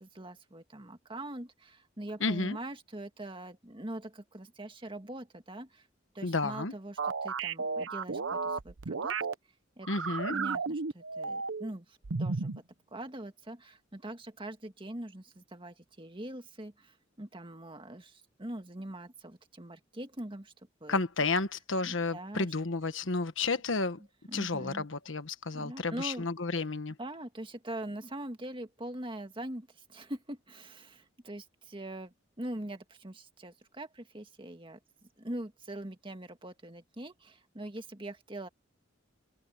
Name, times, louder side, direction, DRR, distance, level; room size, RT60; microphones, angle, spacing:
voice 1, 0.0-5.9 6.1-9.2 9.8-12.6 12.9-20.5 20.8-21.0 21.8-22.5 24.3-24.9 25.5-26.3 27.0-34.8 35.2-38.5, right 1 dB, 25° right, 2.0 m, -43 dB
voice 2, 2.2-2.6 6.2-6.7 9.9-10.4 20.9-24.0 24.3-26.9, left 3 dB, 75° left, 1.4 m, -31 dB
sound 1, 7.0-9.3 9.8-11.7 12.0-12.6, right 4 dB, 80° right, 0.8 m, -33 dB
head